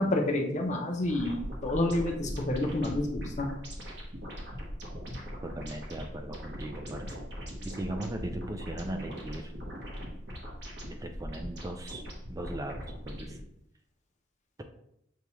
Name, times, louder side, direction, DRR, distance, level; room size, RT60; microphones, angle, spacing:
voice 1, 0.0-3.5, left 1 dB, 40° left, 2 dB, 0.6 m, -29 dB
sound 1, 1.1-13.4, equal, 65° right, 1.2 m, -40 dB
voice 2, 5.4-7.2 7.6-9.5 10.9-12.0 12.3-13.4, right 1 dB, 20° right, 4 dB, 0.3 m, -38 dB
6.8 x 2.3 x 3.0 m, 0.76 s
head